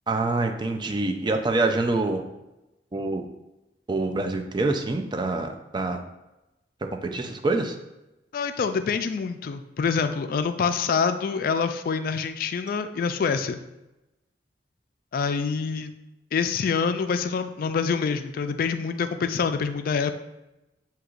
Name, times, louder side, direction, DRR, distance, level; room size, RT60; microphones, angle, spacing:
voice 1, 0.1-2.2 2.9-3.3 3.9-6.0 7.0-7.8, right 2 dB, 25° right, 4 dB, 0.4 m, -26 dB
voice 2, 8.3-13.6 15.1-15.9 16.3-20.1, left 5 dB, 55° left, 9 dB, 0.3 m, -26 dB
7.6 x 2.9 x 2.4 m, 0.96 s
head